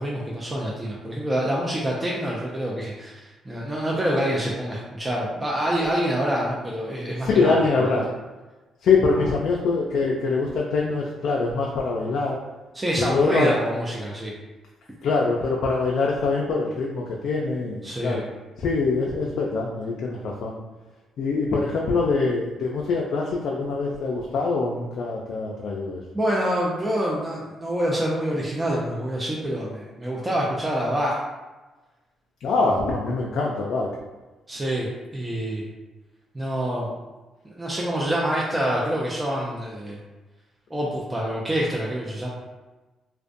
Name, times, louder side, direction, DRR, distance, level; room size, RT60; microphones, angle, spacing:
voice 1, 0.0-8.0 12.7-14.3 17.8-18.2 26.1-31.2 34.5-35.7 36.3-36.9 37.4-40.0 40.7-42.3, equal, 15° right, -4 dB, 0.4 m, -26 dB
voice 2, 7.2-8.1 8.8-12.4 13.0-13.6 15.0-18.2 18.6-20.6 21.2-26.0 32.4-33.9, left 4 dB, 70° left, -2 dB, 0.3 m, -24 dB
2.4 x 2.1 x 2.5 m, 1.2 s
cardioid pair, 90°, 0 cm